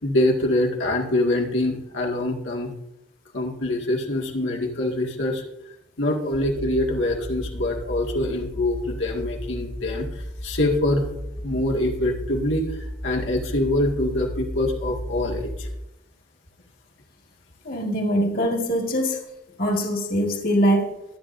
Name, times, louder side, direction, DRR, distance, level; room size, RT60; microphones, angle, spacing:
voice 1, 0.0-2.7 3.3-5.4 6.0-11.1 11.4-12.7 13.0-15.7, left 1 dB, 80° left, -1 dB, 2.0 m, -24 dB
sound 1, 6.3-15.8, equal, 25° left, 0.8 m, -34 dB
voice 2, 17.6-19.2 19.6-20.9, equal, 50° left, 1 dB, 2.0 m, -22 dB
24.0 x 8.8 x 2.7 m, 0.90 s
head